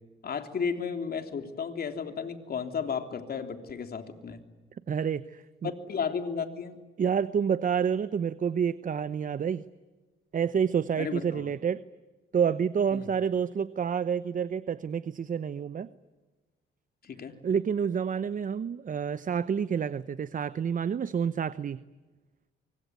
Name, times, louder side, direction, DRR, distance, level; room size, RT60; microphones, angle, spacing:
voice 1, 0.2-4.4 5.6-6.8 11.0-11.4 12.9-13.0 17.0-17.3, left 6 dB, 50° left, 7 dB, 3.4 m, -33 dB
voice 2, 4.9-5.7 7.0-9.6 10.3-11.8 12.3-15.9 17.4-21.8, right 7 dB, 40° right, 15 dB, 0.8 m, -28 dB
25.5 x 24.0 x 9.5 m, 1.2 s
cardioid pair, 90°, 20 cm